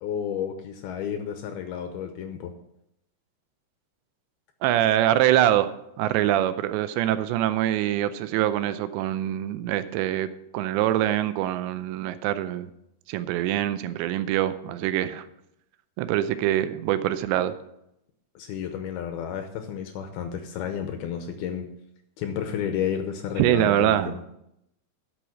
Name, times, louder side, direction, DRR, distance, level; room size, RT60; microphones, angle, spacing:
voice 1, 0.0-2.5 18.4-21.7 22.2-24.3, left 8 dB, 75° left, 7 dB, 2.4 m, -31 dB
voice 2, 4.6-10.3 10.5-12.7 13.1-15.2 16.0-17.5 23.4-24.2, right 12 dB, 85° right, 12 dB, 2.9 m, -24 dB
12.0 x 6.4 x 6.1 m, 0.81 s
omnidirectional pair, 5.1 m